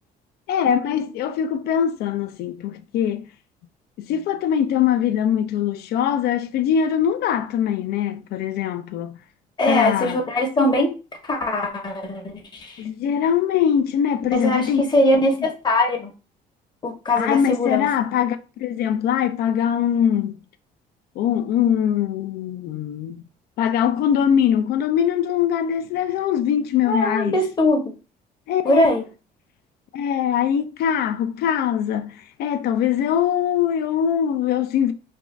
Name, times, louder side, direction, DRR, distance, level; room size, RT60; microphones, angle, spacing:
voice 1, 0.5-3.3 4.0-9.2 9.7-10.2 12.8-14.9 17.2-20.4 21.2-23.2 23.6-27.4 28.5-28.9 29.9-34.9, left 9 dB, 70° left, 0.4 m, -22 dB
voice 2, 9.6-10.9 11.2-12.8 14.3-16.1 16.8-17.9 26.9-27.8 28.6-29.0, left 1 dB, 25° left, 0.8 m, -21 dB
2.5 x 2.3 x 3.1 m
cardioid pair, 110°, 17 cm